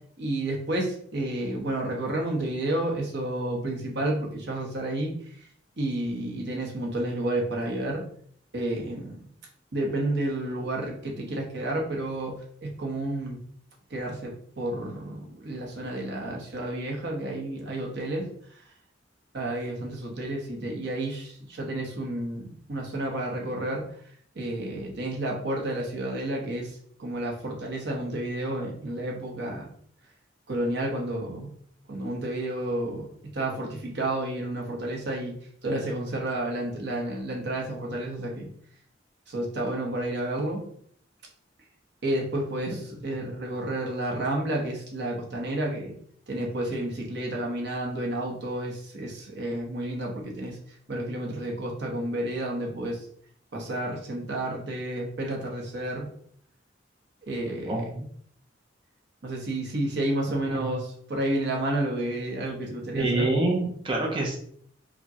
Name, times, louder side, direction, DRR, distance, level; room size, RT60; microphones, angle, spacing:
voice 1, 0.2-5.1 5.8-8.0 8.5-9.2 9.7-12.3 12.6-13.4 13.9-18.3 19.3-23.8 24.4-26.7 27.0-29.7 30.5-31.5 31.9-33.1 33.3-35.4 35.6-38.5 39.3-40.6 42.0-45.9 46.3-50.6 50.9-53.0 53.5-56.1 57.3-58.1 59.2-63.3, right 1 dB, 60° right, 0 dB, 0.9 m, -30 dB
voice 2, 57.7-58.0 60.5-60.6 62.9-64.4, right 2 dB, 25° right, 0 dB, 0.5 m, -26 dB
4.8 x 2.2 x 2.7 m, 0.62 s
head